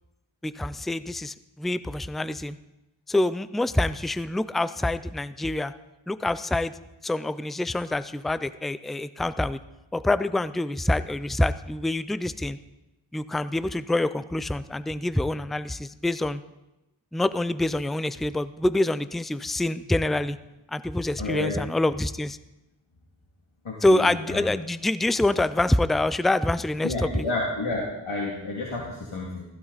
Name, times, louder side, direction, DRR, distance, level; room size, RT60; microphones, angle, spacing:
voice 1, 0.4-2.6 3.1-5.7 6.1-6.7 7.0-9.6 9.9-12.6 13.1-16.4 17.1-20.4 20.7-22.4 23.8-27.1, left 1 dB, ahead, 13 dB, 0.5 m, -26 dB
voice 2, 21.2-21.6 23.6-24.4 26.8-29.4, left 2 dB, 80° left, -4 dB, 2.5 m, -30 dB
15.5 x 14.5 x 4.1 m, 0.95 s
wide cardioid pair, 60°, 49 cm